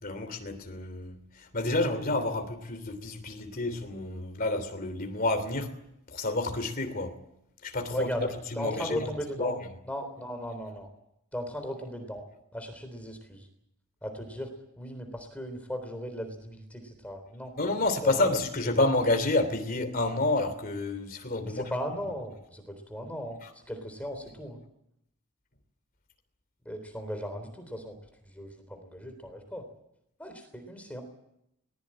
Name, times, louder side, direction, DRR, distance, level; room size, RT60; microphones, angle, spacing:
voice 1, 0.0-5.7 6.1-7.2 7.6-9.0 9.4-9.6 17.6-21.7, left 2 dB, 40° left, 3.0 m, -29 dB
voice 2, 7.9-8.2 8.5-9.5 9.8-10.9 11.3-12.2 12.5-13.5 14.0-14.5 14.8-17.5 18.0-18.4 21.4-23.4 23.7-24.6 26.7-28.0 28.3-29.6 30.2-31.0, equal, 5° left, 3.7 m, -37 dB
20.5 x 20.5 x 8.8 m
head